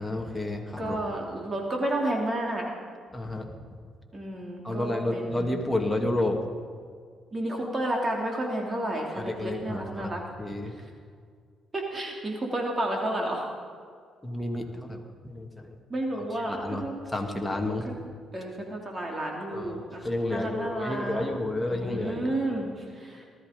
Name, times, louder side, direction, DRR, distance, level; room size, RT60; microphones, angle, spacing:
voice 1, 0.0-1.0 3.1-3.5 4.6-6.4 9.1-10.1 10.4-10.7 14.2-15.8 16.5-17.9 19.5-22.4, left 1 dB, 5° left, 1 dB, 2.4 m, -31 dB
voice 2, 0.8-2.6 4.1-5.6 7.3-10.2 11.7-13.5 15.9-16.9 17.7-17.8 18.3-20.1 20.3-21.3 21.7-23.3, right 1 dB, 30° right, 0 dB, 3.2 m, -31 dB
19.5 x 13.5 x 5.3 m, 2.1 s
cardioid pair, 90°, 0 cm